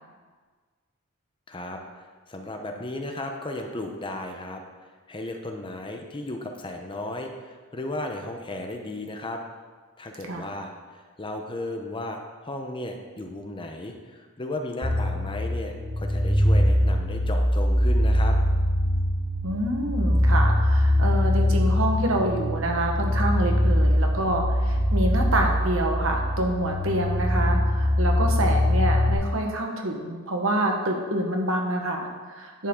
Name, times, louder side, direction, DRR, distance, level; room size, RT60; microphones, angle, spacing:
voice 1, 1.5-4.6 5.1-9.4 10.0-10.7 11.2-18.4, left 1 dB, 25° left, 4 dB, 0.8 m, -35 dB
sound 1, 14.8-29.1, left 1 dB, 40° right, 2.3 m, -22 dB
voice 2, 19.4-32.7, right 1 dB, 70° right, 2 dB, 1.2 m, -27 dB
10.0 x 7.5 x 3.7 m, 1.5 s
head